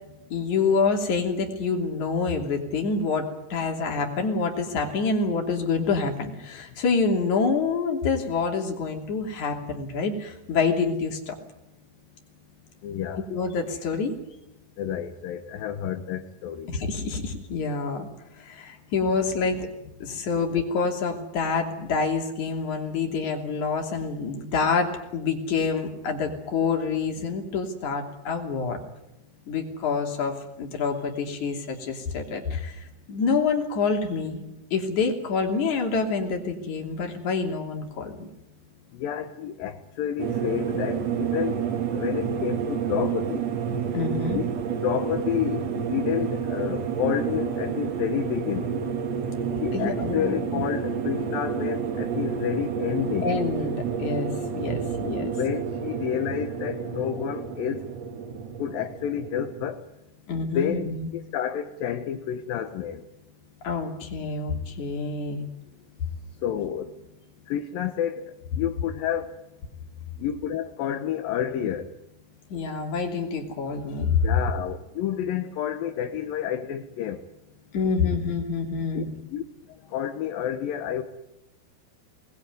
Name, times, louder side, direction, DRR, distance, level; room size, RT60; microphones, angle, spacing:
voice 1, 0.3-11.3 13.3-14.2 16.7-18.1 18.4-19.7 20.0-28.8 29.5-38.3 43.9-44.4 49.7-50.7 53.2-55.3 60.3-61.1 63.6-65.4 72.5-74.2 77.7-79.1, left 4 dB, 50° left, 2 dB, 4.1 m, -27 dB
voice 2, 12.8-13.3 14.8-16.7 38.9-43.4 44.3-44.4 44.8-48.8 49.6-53.3 55.1-57.8 58.6-59.8 60.3-60.9 61.1-63.0 66.4-66.9 67.5-69.3 70.2-71.9 74.0-77.2 78.9-79.4 79.9-81.0, left 9 dB, 70° left, 6 dB, 2.7 m, -30 dB
sound 1, 40.2-59.7, right 7 dB, 55° right, 2.2 m, -30 dB
25.0 x 20.0 x 9.4 m, 0.90 s
omnidirectional pair, 4.5 m